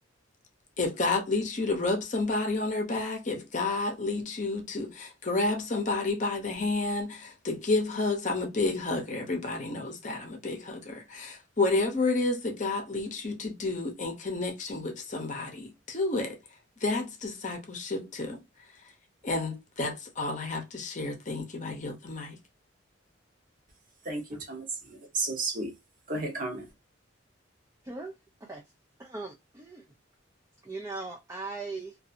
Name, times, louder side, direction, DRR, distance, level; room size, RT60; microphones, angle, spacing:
voice 1, 0.8-16.4 16.8-18.4 19.2-22.4, left 3 dB, 40° left, 0.7 m, -30 dB
voice 2, 24.0-25.7 26.1-26.7, right 2 dB, 45° right, 0.9 m, -33 dB
voice 3, 29.0-29.8 30.6-32.0, right 3 dB, 15° right, 0.3 m, -39 dB
2.6 x 2.4 x 2.5 m
head